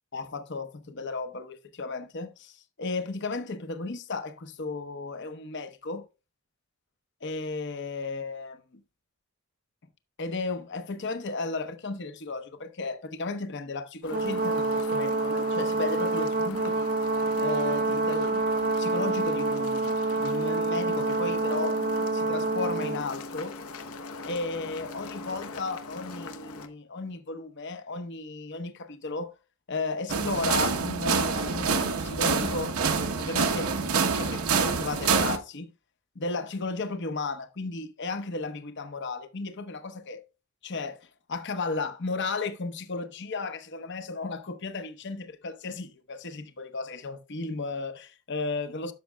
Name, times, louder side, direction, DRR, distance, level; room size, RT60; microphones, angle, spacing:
voice 1, 0.1-6.1 7.2-8.8 10.2-16.9 17.4-21.8 22.1-23.6 24.2-29.3 29.7-32.8 33.2-35.7 36.1-40.2 40.6-48.9, left 3 dB, 50° left, 0.8 m, -34 dB
sound 1, 14.0-26.7, left 3 dB, 70° left, 1.1 m, -40 dB
Brass instrument, 14.1-23.1, right 3 dB, 40° right, 0.6 m, -27 dB
sound 2, 30.1-35.4, right 5 dB, 75° right, 1.0 m, -26 dB
13.0 x 6.3 x 2.2 m
head